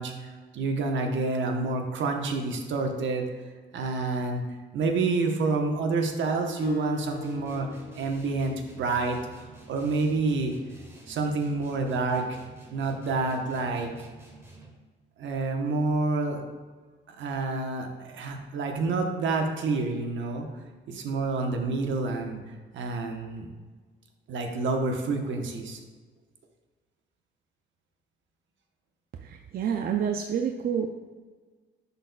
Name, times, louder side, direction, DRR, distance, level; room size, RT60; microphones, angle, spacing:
voice 1, 0.0-3.3 3.7-4.4 4.7-7.7 7.9-10.5 11.1-12.4 12.7-14.1 15.2-16.4 17.1-20.5 20.9-22.4 22.7-23.5 24.3-25.8, right 3 dB, 70° right, 3 dB, 1.0 m, -28 dB
Acoustic guitar, 6.6-9.4, left 5 dB, 45° left, 0.7 m, -40 dB
sound 1, 7.2-14.9, right 3 dB, 15° right, 1.4 m, -49 dB
voice 2, 29.2-30.9, right 8 dB, 50° right, 4 dB, 0.4 m, -28 dB
11.0 x 4.0 x 2.3 m, 1.4 s
cardioid pair, 90°, 20 cm